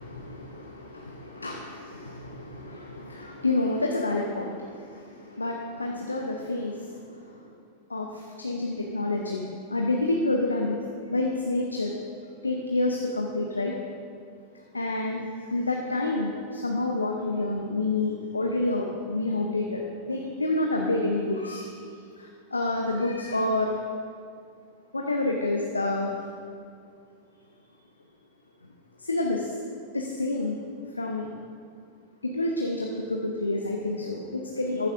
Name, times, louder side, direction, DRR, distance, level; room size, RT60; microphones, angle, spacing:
voice 1, 0.0-7.4 7.9-9.4 9.7-10.8 11.1-11.9 12.4-13.8 14.7-15.2 15.5-21.7 22.2-23.7 24.9-26.1 29.0-29.5 29.9-30.6 30.9-31.3 32.2-34.9, left 2 dB, 80° left, 1 dB, 0.8 m, -28 dB
14.0 x 12.0 x 2.6 m, 2.4 s
figure-of-eight pair, 90°, 0 cm